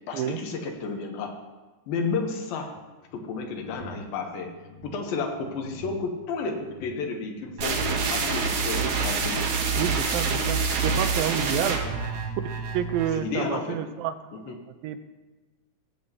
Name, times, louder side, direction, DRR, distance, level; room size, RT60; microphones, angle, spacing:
voice 1, 0.1-1.3 1.9-2.7 3.1-4.5 4.8-7.8 8.1-9.4 11.5-11.7 13.1-13.8 14.3-14.6, left 4 dB, 80° left, 3 dB, 2.9 m, -32 dB
sound 1, 3.1-12.3, equal, 65° left, 2.2 m, -47 dB
sound 2, 7.6-13.2, right 4 dB, 65° right, 2.1 m, -27 dB
voice 2, 9.8-11.8 12.4-14.4 14.8-15.0, right 10 dB, 85° right, 8 dB, 2.4 m, -29 dB
18.5 x 7.9 x 2.9 m, 1.2 s
omnidirectional pair, 4.2 m